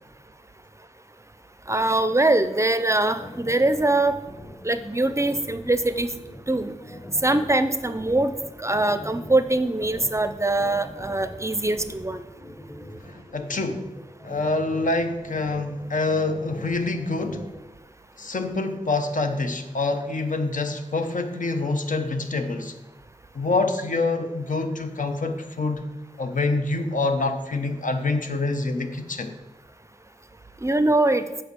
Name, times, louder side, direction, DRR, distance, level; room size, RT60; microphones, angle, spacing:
voice 1, 1.7-4.1 4.6-6.1 6.5-6.7 7.2-12.3 30.6-31.2, right 2 dB, 20° right, 11 dB, 0.5 m, -22 dB
sound 1, 2.9-17.6, equal, 20° left, 1.1 m, -42 dB
voice 2, 13.1-13.9 14.2-17.4 18.2-22.7 23.3-25.8 26.2-29.3, left 3 dB, 70° left, 7 dB, 0.9 m, -26 dB
7.8 x 4.9 x 6.7 m, 1.0 s
wide cardioid pair, 90°, 14 cm